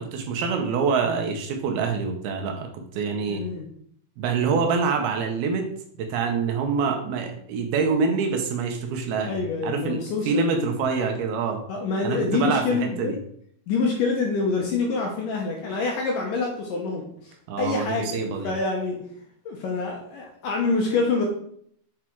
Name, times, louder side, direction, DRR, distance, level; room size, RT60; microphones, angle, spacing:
voice 1, 0.0-3.4 4.2-5.7 6.0-9.4 9.6-10.0 10.3-11.6 12.0-13.2 17.5-18.5, right 5 dB, 75° right, 4 dB, 2.7 m, -25 dB
voice 2, 3.3-3.7 9.3-10.7 11.7-13.2 13.7-19.1 19.5-21.3, left 4 dB, 70° left, 0 dB, 2.1 m, -26 dB
8.3 x 4.9 x 4.5 m, 0.67 s
omnidirectional pair, 4.8 m